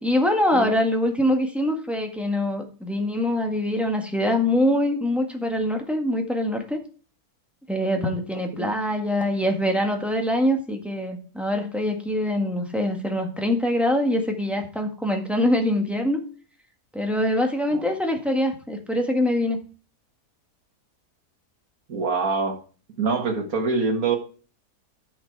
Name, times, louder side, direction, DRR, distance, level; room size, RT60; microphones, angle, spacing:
voice 1, 0.0-6.8 7.7-16.2 16.9-19.6, left 1 dB, ahead, 3 dB, 1.6 m, -24 dB
voice 2, 21.9-22.6 23.0-24.2, right 4 dB, 65° right, 4 dB, 2.1 m, -24 dB
10.0 x 6.3 x 4.7 m, 0.38 s
omnidirectional pair, 1.6 m